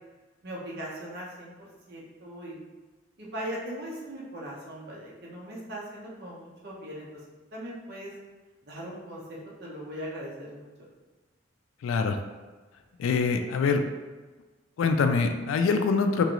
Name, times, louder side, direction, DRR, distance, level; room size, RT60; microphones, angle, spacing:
voice 1, 0.4-2.6 3.2-7.2 7.5-8.1 8.6-10.9, equal, 55° right, -4 dB, 0.8 m, -39 dB
voice 2, 11.8-12.2 13.0-13.8 14.8-16.2, left 4 dB, 85° left, 8 dB, 0.3 m, -24 dB
2.9 x 2.5 x 3.0 m, 1.3 s
head